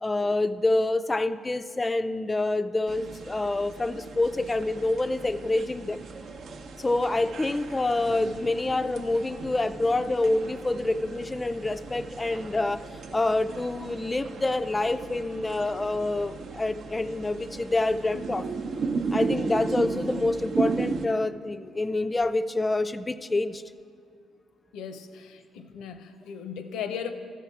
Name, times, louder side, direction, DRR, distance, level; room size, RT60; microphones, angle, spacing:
voice 1, 0.0-6.0 6.7-12.9 13.1-18.5 19.1-23.6, left 2 dB, 20° left, 12 dB, 0.4 m, -27 dB
sound 1, 2.9-21.1, right 4 dB, 60° right, 0.7 m, -35 dB
voice 2, 24.7-27.1, left 7 dB, 85° left, 9 dB, 0.6 m, -37 dB
13.5 x 4.7 x 7.0 m, 2.3 s
cardioid pair, 90°, 0 cm